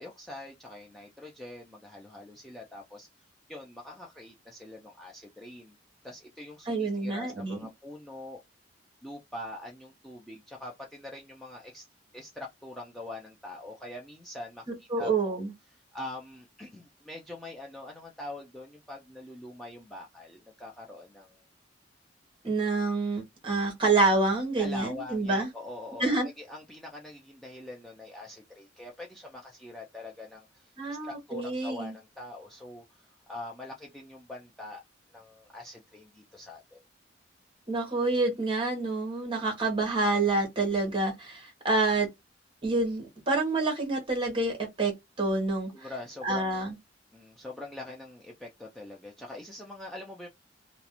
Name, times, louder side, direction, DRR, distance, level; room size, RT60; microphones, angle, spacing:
voice 1, 0.0-3.1 3.5-5.8 6.0-8.4 9.0-11.9 12.1-15.4 15.9-21.4 24.6-34.8 35.1-36.8 45.7-46.7 47.1-50.3, left 2 dB, ahead, 0.4 m, -44 dB
voice 2, 6.7-7.7 14.9-15.5 22.4-25.5 26.0-26.3 30.8-31.9 37.7-42.1 42.6-44.9 45.2-45.7 46.2-46.8, right 3 dB, 30° right, 0.8 m, -27 dB
2.4 x 2.0 x 2.8 m
head